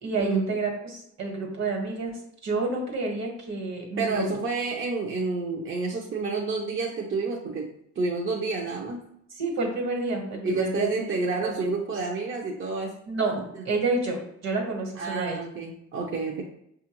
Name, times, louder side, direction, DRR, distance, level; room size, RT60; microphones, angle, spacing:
voice 1, 0.0-2.1 2.4-4.3 9.4-11.1 11.4-11.7 13.1-13.4 13.7-15.4, right 3 dB, 65° right, 2 dB, 1.4 m, -29 dB
voice 2, 4.0-7.7 8.0-9.0 10.4-12.9 13.5-13.6 15.0-16.4, right 3 dB, 40° right, -1 dB, 0.6 m, -29 dB
5.6 x 2.4 x 2.9 m, 0.75 s
cardioid pair, 90°, 30 cm